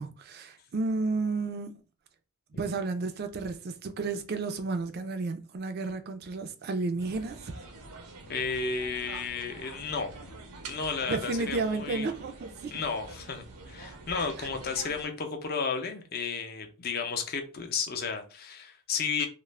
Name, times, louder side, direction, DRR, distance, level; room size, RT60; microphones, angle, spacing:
voice 1, 0.0-1.8 2.6-7.5 11.1-12.8 14.4-14.5, right 3 dB, 45° right, 0.4 m, -32 dB
sound 1, 7.0-15.1, right 2 dB, 85° right, 0.7 m, -46 dB
voice 2, 8.3-10.3 10.7-12.1 12.7-19.3, left 5 dB, 45° left, 0.5 m, -33 dB
2.4 x 2.0 x 3.1 m
head